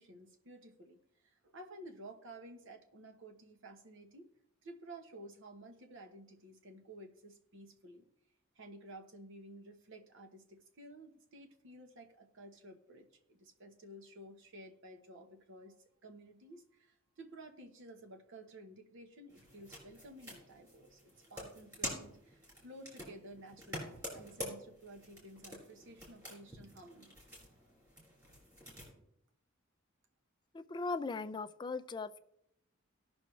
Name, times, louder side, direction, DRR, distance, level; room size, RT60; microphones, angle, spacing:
voice 1, 0.0-4.3 4.6-8.1 8.5-15.8 16.0-27.2, right 1 dB, 65° right, 5 dB, 1.1 m, -53 dB
sound 1, 19.3-28.9, equal, 15° right, 4.5 m, -48 dB
voice 2, 30.5-32.2, left 3 dB, 20° left, 11 dB, 0.4 m, -39 dB
18.0 x 6.3 x 3.2 m, 0.76 s
head